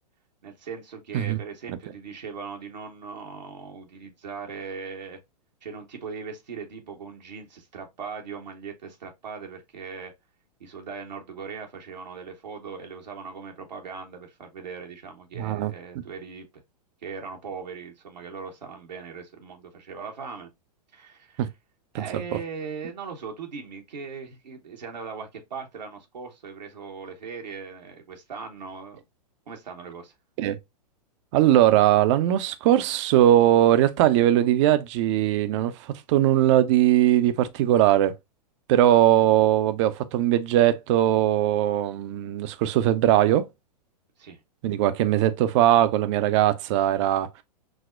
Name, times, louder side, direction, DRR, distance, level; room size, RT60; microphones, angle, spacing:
voice 1, 0.4-5.2 5.6-10.1 10.6-16.6 17.0-20.5 20.9-21.4 21.9-29.0 29.5-30.1 44.2-44.4, right 5 dB, 85° right, 1.1 m, -39 dB
voice 2, 15.4-15.7 21.4-21.5 21.9-22.2 30.4-30.6 31.3-38.1 38.7-43.5 44.6-47.4, right 12 dB, 45° right, 0.6 m, -20 dB
6.1 x 2.1 x 2.4 m
hypercardioid pair, 115°, 21 cm